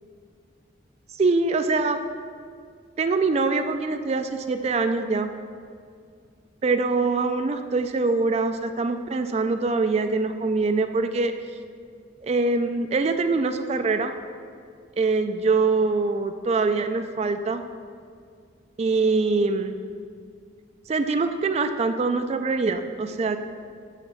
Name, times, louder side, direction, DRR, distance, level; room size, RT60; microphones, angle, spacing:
voice 1, 1.2-2.0 3.0-5.3 6.6-11.3 12.2-14.1 15.0-17.6 18.8-19.8 20.9-23.4, right 3 dB, 35° right, 8 dB, 0.3 m, -23 dB
7.2 x 5.7 x 6.8 m, 2.2 s
head